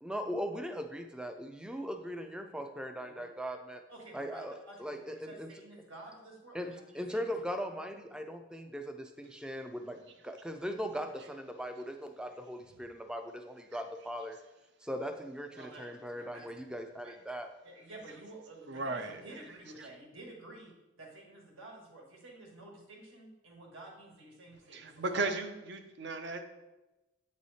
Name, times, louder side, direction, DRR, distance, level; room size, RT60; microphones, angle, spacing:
voice 1, 0.0-3.8 4.1-5.5 6.5-14.4 14.8-17.5, equal, 5° right, 6 dB, 0.3 m, -39 dB
voice 2, 3.9-7.2 7.6-7.7 15.5-16.4 16.8-17.1 17.6-20.7 21.0-25.2, right 2 dB, 75° right, -1 dB, 1.5 m, -51 dB
voice 3, 18.7-19.2 24.7-26.4, right 3 dB, 55° right, 7 dB, 0.6 m, -35 dB
8.3 x 3.2 x 4.1 m, 1.0 s
head